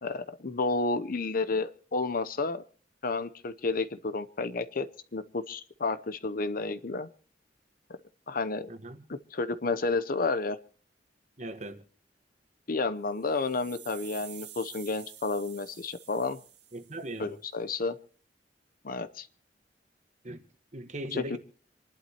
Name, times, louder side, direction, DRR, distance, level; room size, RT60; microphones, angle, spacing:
voice 1, 0.0-2.6 3.0-4.9 5.1-7.1 8.3-8.7 9.3-10.6 12.7-16.4 17.2-18.0 18.8-19.3 21.1-21.4, left 3 dB, 50° left, 0.8 m, -31 dB
voice 2, 8.7-9.0 11.4-11.8 16.7-17.3 20.2-20.4 20.7-21.4, right 1 dB, 40° right, 1.5 m, -39 dB
sound 1, 13.1-17.3, right 10 dB, 70° right, 1.7 m, -49 dB
27.5 x 11.5 x 3.0 m
head